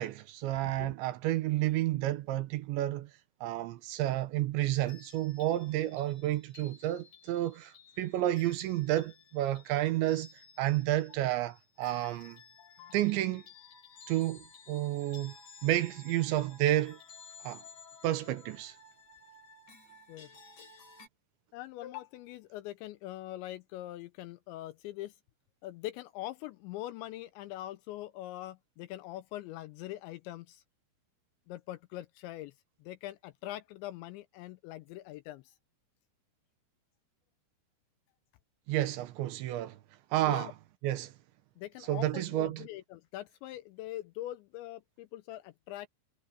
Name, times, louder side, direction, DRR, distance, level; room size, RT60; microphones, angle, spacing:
voice 1, 0.0-3.1 3.4-10.3 10.6-12.4 12.9-13.4 14.1-15.3 15.6-17.0 17.4-17.6 18.0-18.8 38.7-39.8 40.1-40.5 40.8-41.1 41.9-42.7, right 14 dB, 75° right, 3.1 m, -31 dB
sound 1, 4.9-21.1, left 4 dB, 40° left, 5.4 m, -55 dB
voice 2, 12.6-13.0 20.1-20.3 21.5-25.1 25.6-30.6 31.5-32.5 32.8-35.6 40.2-40.5 41.6-45.9, left 15 dB, 80° left, 2.7 m, -43 dB
omnidirectional pair, 5.7 m